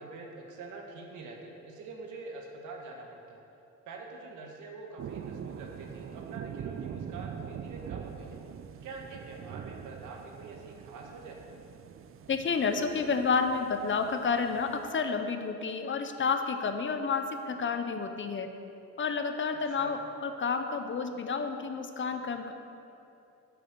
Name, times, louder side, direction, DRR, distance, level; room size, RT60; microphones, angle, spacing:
voice 1, 0.0-3.4 3.8-8.4 8.8-11.4 19.7-19.9, right 3 dB, 80° right, 1 dB, 1.6 m, -45 dB
sound 1, 5.0-14.9, right 8 dB, 45° right, 0.5 m, -43 dB
voice 2, 12.3-18.5 19.0-22.5, left 5 dB, 40° left, 7 dB, 0.8 m, -30 dB
8.5 x 6.8 x 6.8 m, 2.7 s
cardioid pair, 90°, 30 cm